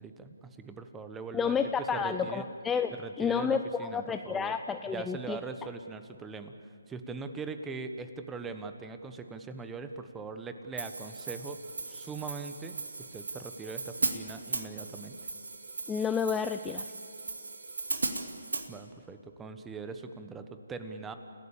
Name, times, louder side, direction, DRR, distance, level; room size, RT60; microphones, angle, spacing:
voice 1, 0.0-1.5 1.9-2.4 2.9-4.6 4.9-6.5 6.9-12.8 13.1-15.2 18.7-21.1, right 4 dB, 10° right, 8 dB, 1.2 m, -41 dB
voice 2, 1.3-5.4 15.9-16.9, left 6 dB, 10° left, 8 dB, 0.5 m, -30 dB
Hi-hat, 10.8-18.7, right 3 dB, 75° right, 2.4 m, -37 dB
29.5 x 17.0 x 7.3 m, 2.3 s
figure-of-eight pair, 150°, 0 cm